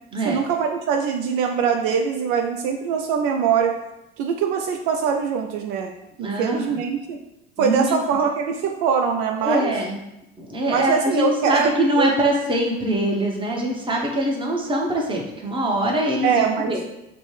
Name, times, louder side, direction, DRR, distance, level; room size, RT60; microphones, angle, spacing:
voice 1, 0.2-3.7 4.2-5.9 6.2-7.2 7.6-9.7 10.7-11.7 12.0-12.2 16.2-16.8, right 6 dB, 65° right, 3 dB, 0.5 m, -22 dB
voice 2, 6.2-6.8 7.6-8.0 9.4-10.0 10.4-16.8, right 1 dB, 15° right, 0 dB, 0.9 m, -23 dB
5.1 x 2.2 x 3.2 m, 0.88 s
hypercardioid pair, 85°, 29 cm